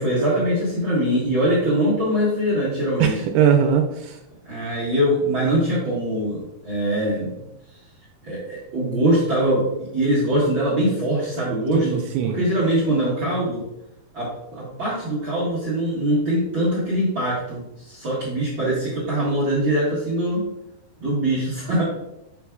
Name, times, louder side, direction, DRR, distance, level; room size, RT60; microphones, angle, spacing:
voice 1, 0.0-3.1 4.4-7.3 8.2-13.6 14.1-20.4 21.0-21.8, right 1 dB, 55° right, -7 dB, 1.3 m, -22 dB
voice 2, 3.0-4.2 11.8-12.4, right 8 dB, 85° right, 4 dB, 2.4 m, -20 dB
7.0 x 5.8 x 2.3 m, 0.85 s
omnidirectional pair, 4.6 m